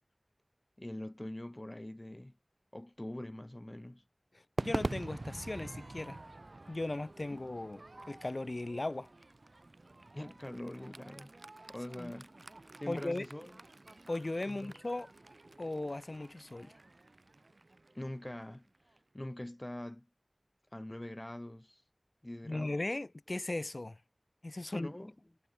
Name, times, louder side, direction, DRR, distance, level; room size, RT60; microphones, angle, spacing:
voice 1, 0.8-2.3 2.7-4.0 7.3-7.4 10.1-11.3 11.7-12.4 12.8-13.5 14.5-14.7 17.9-20.1 20.7-21.8 22.2-22.8 24.7-25.1, left 1 dB, 30° left, 2.2 m, -44 dB
voice 2, 4.3-6.2 6.7-9.1 12.0-12.1 12.9-13.3 14.1-15.1 15.6-16.7 22.4-24.0 24.4-24.9, left 2 dB, 60° left, 0.6 m, -37 dB
Crowd / Fireworks, 4.6-19.0, right 2 dB, 65° right, 0.3 m, -45 dB
wide cardioid pair, 40°, 0 cm